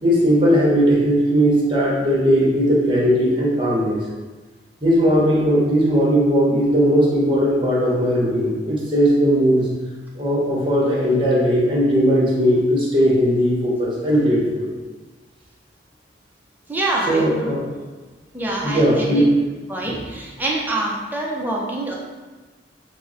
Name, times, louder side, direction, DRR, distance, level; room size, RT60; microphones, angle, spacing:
voice 1, 0.0-4.0 4.8-9.7 10.1-14.7 17.1-17.6 18.4-19.3, equal, 25° right, -5 dB, 0.9 m, -18 dB
voice 2, 16.7-17.5 18.3-19.2 19.7-21.9, right 1 dB, 10° right, -3 dB, 0.5 m, -25 dB
3.8 x 2.0 x 3.8 m, 1.3 s
head